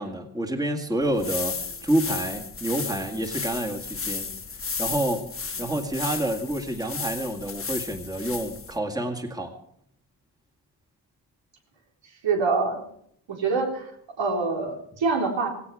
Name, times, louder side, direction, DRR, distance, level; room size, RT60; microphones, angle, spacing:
voice 1, 0.0-4.3 4.8-5.3 5.6-9.6, right 1 dB, 10° right, 2 dB, 2.0 m, -28 dB
sound 1, 1.0-8.8, left 5 dB, 30° left, 1.1 m, -34 dB
voice 2, 12.2-12.8 13.3-13.9 14.2-15.5, right 4 dB, 90° right, 1 dB, 3.9 m, -25 dB
17.5 x 16.5 x 4.9 m, 0.69 s
wide cardioid pair, 115°, 44 cm